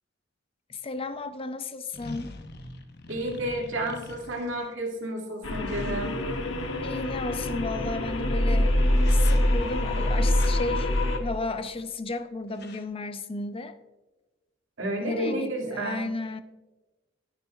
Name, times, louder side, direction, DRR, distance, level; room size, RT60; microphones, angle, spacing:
voice 1, 0.7-2.4 6.8-8.7 9.1-10.9 11.2-13.7 15.0-16.4, left 3 dB, 30° left, 0.5 m, -33 dB
sound 1, 1.0-1.1 1.9-4.8 5.7-7.0 8.4-8.6 9.0-9.7 10.4-10.6 11.5-11.9 12.2-12.3 12.5-12.8, left 2 dB, 55° left, 1.0 m, -45 dB
voice 2, 3.1-6.2 14.8-16.1, right 1 dB, 80° right, 2.3 m, -31 dB
sound 2, 5.4-11.2, left 1 dB, 85° left, 1.1 m, -25 dB
19.5 x 6.7 x 2.4 m
head